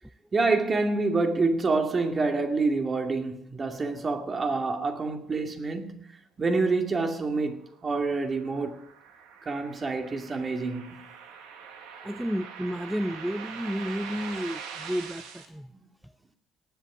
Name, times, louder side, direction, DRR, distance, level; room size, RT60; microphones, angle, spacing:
voice 1, 0.3-6.0 6.4-8.9 9.4-11.1, right 3 dB, 35° right, 2.4 m, -27 dB
sound 1, 7.6-15.5, right 6 dB, 90° right, 2.0 m, -43 dB
voice 2, 12.0-15.7, equal, ahead, 0.6 m, -31 dB
18.5 x 8.2 x 6.2 m
supercardioid pair, 80°, 0 cm